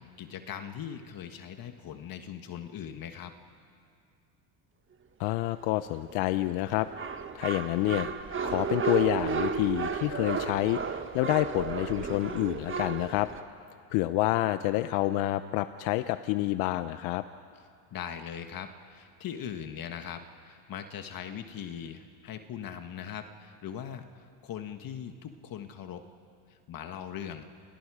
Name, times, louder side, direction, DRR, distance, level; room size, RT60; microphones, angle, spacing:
voice 1, 0.0-3.3 17.9-26.1 26.5-27.4, left 9 dB, 45° left, 7 dB, 1.6 m, -40 dB
voice 2, 5.2-7.1 7.3-8.1 8.4-13.3 13.9-17.2, left 16 dB, 70° left, 11 dB, 0.9 m, -28 dB
sound 1, 6.0-13.4, right 6 dB, 25° right, 1.5 m, -33 dB
29.5 x 29.5 x 4.9 m, 2.3 s
supercardioid pair, 105°, 47 cm